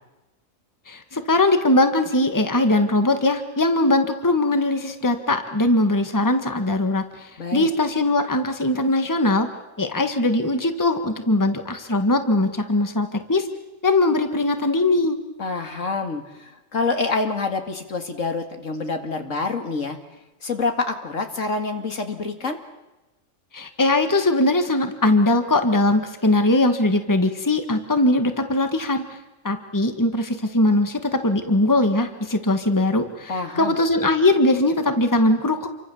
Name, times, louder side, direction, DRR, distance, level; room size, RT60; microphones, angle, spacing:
voice 1, 0.9-9.5 9.8-13.5 13.8-15.2 23.5-29.0 29.4-35.7, left 2 dB, 15° left, 7 dB, 1.6 m, -20 dB
voice 2, 7.4-7.7 15.4-20.0 20.4-22.6 33.3-33.8, left 3 dB, 70° left, 6 dB, 2.5 m, -27 dB
28.5 x 24.0 x 7.2 m, 1.0 s
omnidirectional pair, 1.4 m